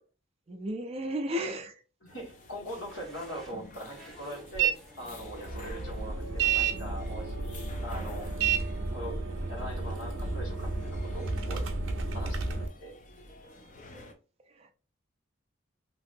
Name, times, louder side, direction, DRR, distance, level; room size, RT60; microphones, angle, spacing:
voice 1, 0.5-1.8 13.9-14.1 14.5-14.7, equal, 30° right, 6 dB, 0.4 m, -34 dB
voice 2, 2.1-4.7 5.0-8.3 8.9-9.2 9.5-11.6 12.1-12.5 12.8-12.9, equal, 75° left, -1 dB, 1.5 m, -41 dB
sound 1, 2.1-14.1, left 2 dB, 40° left, 0.5 m, -51 dB
sound 2, 2.9-9.0, equal, ahead, 0.7 m, -56 dB
sound 3, 4.5-4.7 5.1-12.7, right 5 dB, 75° right, 0.6 m, -31 dB
3.0 x 2.7 x 2.5 m, 0.35 s
head